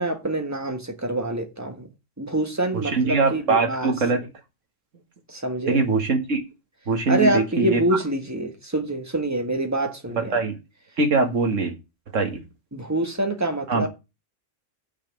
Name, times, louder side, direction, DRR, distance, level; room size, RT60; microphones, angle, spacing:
voice 1, 0.0-1.9 2.2-3.9 5.3-5.8 7.1-10.4 12.7-13.9, right 1 dB, 15° right, 1.4 m, -26 dB
voice 2, 2.7-4.2 5.7-6.4 6.9-7.8 10.1-10.6 11.0-11.7 12.1-12.4 13.7-13.9, right 4 dB, 70° right, 2.1 m, -22 dB
6.4 x 5.8 x 7.0 m
omnidirectional pair, 1.3 m